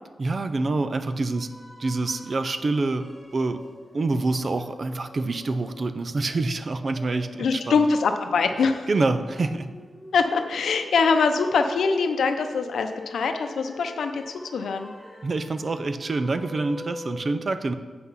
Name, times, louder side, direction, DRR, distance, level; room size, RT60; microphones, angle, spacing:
voice 1, 0.2-1.5 1.8-3.6 3.9-7.8 8.9-9.7 15.2-17.7, right 3 dB, 40° right, 10 dB, 0.5 m, -26 dB
sound 1, 1.3-17.2, left 1 dB, 15° right, 2.8 m, -45 dB
voice 2, 7.4-8.9 10.1-14.9, left 4 dB, 90° left, 7 dB, 0.6 m, -23 dB
7.7 x 5.9 x 5.6 m, 1.4 s
wide cardioid pair, 130°, 0 cm